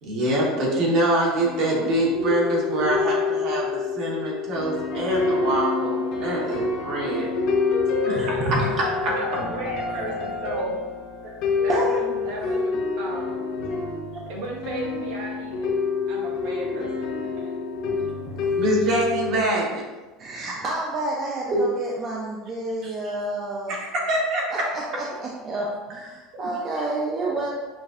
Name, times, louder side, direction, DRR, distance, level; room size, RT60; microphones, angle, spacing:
voice 1, 0.0-7.3 18.5-19.8 21.5-21.6 22.8-22.9 23.7-24.4, right 1 dB, 50° right, -3 dB, 1.3 m, -24 dB
sound 1, 1.3-19.4, left 4 dB, 50° left, 0.7 m, -27 dB
voice 2, 8.0-8.7 11.7-12.0 18.3-18.6 20.2-23.8 24.5-27.5, right 2 dB, 30° right, -3 dB, 0.5 m, -29 dB
voice 3, 9.1-10.8 11.2-13.4 14.3-15.7 16.1-17.1 17.4-17.6, right 1 dB, 70° right, -2 dB, 1.0 m, -35 dB
6.0 x 2.5 x 2.5 m, 1.2 s
supercardioid pair, 140°, 0 cm